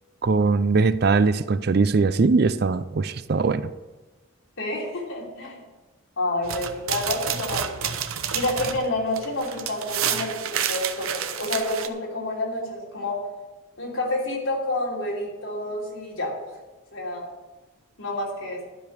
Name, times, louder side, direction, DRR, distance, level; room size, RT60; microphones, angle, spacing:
voice 1, 0.2-3.7, right 4 dB, 50° right, 14 dB, 0.4 m, -21 dB
voice 2, 4.6-5.6 6.2-7.9 8.3-13.2 13.8-16.4 16.9-17.3 18.0-18.6, left 1 dB, 75° left, -3 dB, 3.2 m, -29 dB
sound 1, 6.4-11.9, right 8 dB, 80° right, 0.8 m, -29 dB
12.0 x 5.1 x 8.3 m, 1.2 s
head